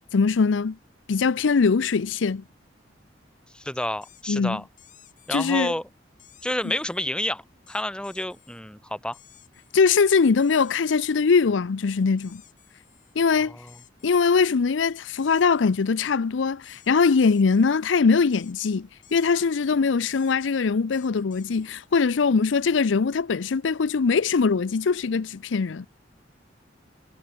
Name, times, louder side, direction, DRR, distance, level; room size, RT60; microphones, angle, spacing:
voice 1, 0.1-0.8 1.1-2.4 4.3-4.6 5.3-5.7 6.6-6.7 9.7-12.4 13.2-13.6 14.0-25.8, left 5 dB, 80° left, 0.5 m, -22 dB
voice 2, 3.5-4.7 5.3-5.8 6.4-7.4 7.7-9.2 13.5-13.7, left 1 dB, 5° left, 0.8 m, -29 dB
sound 1, 4.0-4.4 4.8-5.7 6.2-7.1 7.7-8.6 9.1-10.0 10.4-11.3 12.2-13.2 13.7-14.3 15.0-15.9 16.6-17.9 18.3-18.6 19.0-19.6 20.0-21.9, left 11 dB, 45° left, 5.2 m, -55 dB
head